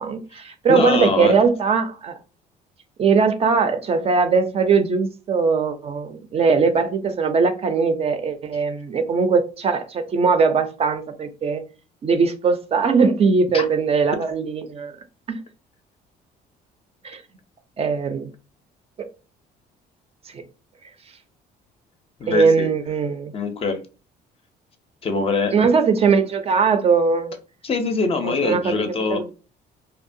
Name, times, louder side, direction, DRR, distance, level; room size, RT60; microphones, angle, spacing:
voice 1, 0.0-2.2 3.0-11.6 12.0-15.0 15.3-15.4 17.0-17.2 17.8-18.3 20.3-20.4 22.3-23.3 25.5-27.3 28.2-29.3, right 5 dB, 35° right, 8 dB, 0.4 m, -20 dB
voice 2, 0.7-1.4 13.5-13.7 22.2-22.7 23.3-23.8 25.0-25.5 27.6-29.2, left 4 dB, 35° left, 7 dB, 0.5 m, -23 dB
2.7 x 2.1 x 2.6 m, 0.33 s
cardioid pair, 110°, 17 cm